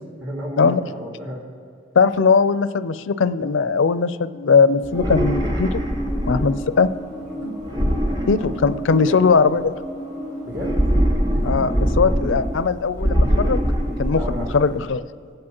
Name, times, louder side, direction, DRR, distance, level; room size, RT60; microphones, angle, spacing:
voice 1, 0.2-1.4 7.4-7.6 8.0-8.2 8.9-9.2 10.4-10.8 11.3-11.7 14.1-14.5, equal, 70° right, -4 dB, 3.0 m, -33 dB
voice 2, 2.0-5.8 6.3-6.9 8.3-9.7 11.4-15.0, left 5 dB, 85° left, 13 dB, 0.5 m, -19 dB
sound 1, 4.8-6.8 7.6-9.1 10.5-12.7 13.0-14.7, equal, 20° right, 1.0 m, -22 dB
sound 2, 5.9-14.0, equal, 40° right, 2.4 m, -36 dB
24.0 x 8.7 x 3.0 m, 2.1 s
head